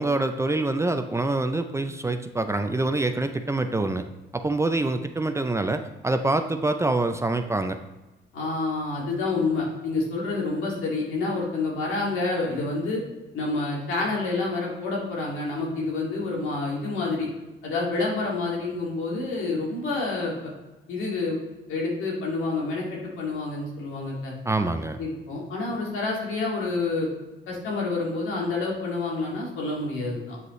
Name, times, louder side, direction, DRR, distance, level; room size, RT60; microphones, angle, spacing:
voice 1, 0.0-4.0 4.3-7.8 24.5-25.0, right 2 dB, 15° right, 8 dB, 0.5 m, -25 dB
voice 2, 8.3-13.0 13.3-17.3 17.6-20.5 20.9-21.4 21.7-24.3 25.0-27.1 27.5-30.4, left 3 dB, 85° left, -3 dB, 2.2 m, -28 dB
8.1 x 5.2 x 3.1 m, 1.1 s
cardioid pair, 90°, 20 cm